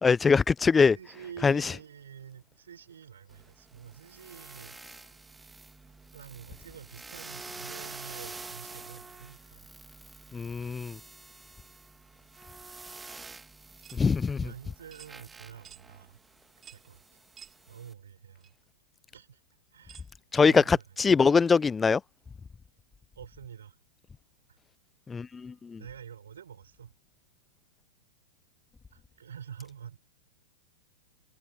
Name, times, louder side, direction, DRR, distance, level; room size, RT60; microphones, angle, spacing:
voice 1, 0.0-1.0 1.4-1.6 10.3-11.0 13.9-14.5 20.3-22.0 25.1-25.8, left 5 dB, 15° left, 0.4 m, -23 dB
voice 2, 0.9-4.8 6.1-9.7 13.9-14.0 14.3-16.2 16.7-17.0 17.7-18.5 19.1-19.4 19.7-20.1 20.3-20.9 23.1-23.8 24.5-24.6 25.8-26.9 28.9-30.0, right 8 dB, 80° right, 6.4 m, -47 dB
sound 1, 3.3-17.9, right 3 dB, 10° right, 1.8 m, -48 dB
sound 2, 13.8-14.0 14.9-15.1 15.6-15.8 16.6-16.9 17.4-17.6 18.4-18.5 19.9-20.1, right 9 dB, 25° right, 4.6 m, -50 dB
hypercardioid pair, 105°, 0 cm